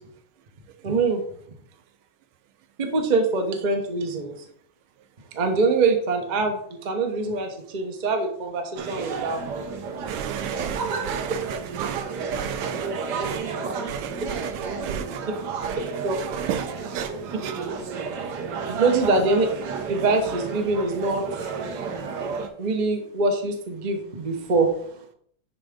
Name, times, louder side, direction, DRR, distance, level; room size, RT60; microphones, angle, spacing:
voice 1, 0.8-1.2 2.8-4.4 5.3-9.4 13.6-13.7 16.0-16.2 18.7-19.5 19.9-21.2 22.6-24.7, right 3 dB, 40° right, 0.6 m, -24 dB
sound 1, 8.8-22.5, right 5 dB, 60° right, 1.2 m, -31 dB
voice 2, 10.1-13.5 13.9-15.2 15.6-15.7 16.1-17.1 17.4-17.5, right 9 dB, 80° right, 1.3 m, -33 dB
10.5 x 3.8 x 3.6 m
omnidirectional pair, 2.4 m